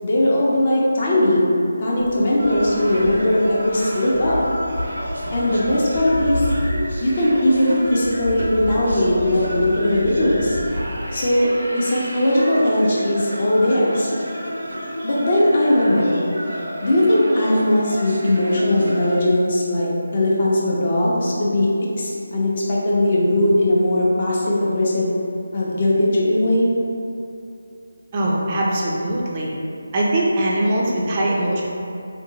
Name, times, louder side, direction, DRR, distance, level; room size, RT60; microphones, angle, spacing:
voice 1, 0.0-1.5 1.8-4.4 5.3-6.5 7.0-10.6 11.1-14.1 15.0-16.2 16.8-21.7 22.0-25.1 25.5-26.7, left 1 dB, 45° left, -5 dB, 0.6 m, -19 dB
sound 1, 2.0-11.0, left 1 dB, 80° left, 1.0 m, -31 dB
sound 2, 2.4-19.2, equal, 80° right, 0.6 m, -31 dB
voice 2, 28.1-29.5 29.9-31.6, right 1 dB, 25° right, -5 dB, 0.4 m, -21 dB
2.7 x 2.7 x 2.7 m, 2.5 s
figure-of-eight pair, 165°, 0 cm